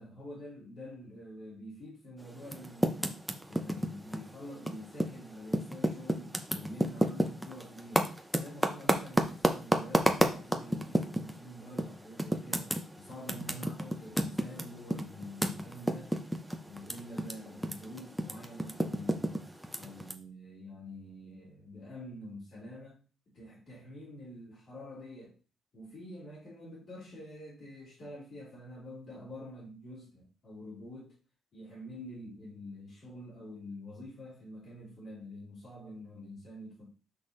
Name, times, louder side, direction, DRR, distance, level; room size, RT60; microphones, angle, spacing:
voice 1, 0.0-3.2 3.5-16.1 16.6-19.5 19.8-23.0 23.3-25.4 25.7-31.2 31.5-36.8, left 1 dB, 60° left, 4.0 m, -47 dB
Typing, 2.4-5.2 5.5-11.4 11.8-11.9 12.2-17.3 17.6-20.1, equal, 5° right, 0.9 m, -30 dB
6.2 x 5.9 x 3.3 m
cardioid pair, 90°, 0 cm